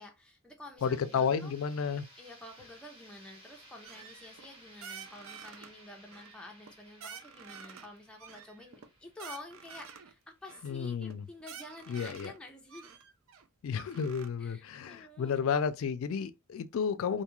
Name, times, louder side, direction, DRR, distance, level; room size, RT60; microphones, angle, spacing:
voice 1, 0.0-1.5 2.2-12.9 14.4-15.4, left 2 dB, 5° left, 0.4 m, -50 dB
voice 2, 0.8-2.0 10.6-11.2 11.9-12.3 13.6-17.2, left 6 dB, 80° left, 0.3 m, -32 dB
sound 1, 0.8-10.5, right 1 dB, 25° right, 1.1 m, -58 dB
sound 2, 3.8-4.5 4.8-5.7 6.1-6.7 7.0-7.9 8.2-10.1 10.5-10.7 11.1-11.2 11.4-12.4 12.7-14.3, right 6 dB, 75° right, 0.4 m, -49 dB
2.7 x 2.3 x 2.9 m
head